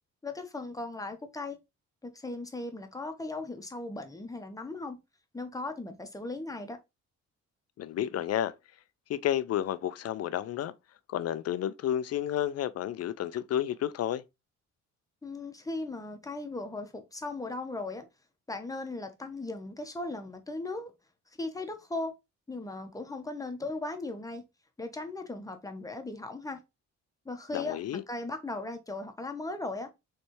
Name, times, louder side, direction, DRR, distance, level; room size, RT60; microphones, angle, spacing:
voice 1, 0.2-1.6 2.0-5.0 5.3-6.8 15.2-18.1 18.5-20.9 21.4-22.1 22.5-24.4 24.8-26.6 27.2-29.9, left 2 dB, 10° left, 0.9 m, -37 dB
voice 2, 7.8-8.5 9.1-10.7 11.1-14.2 27.5-28.0, left 11 dB, 55° left, 0.4 m, -31 dB
4.1 x 3.3 x 3.1 m
cardioid pair, 90°, 30 cm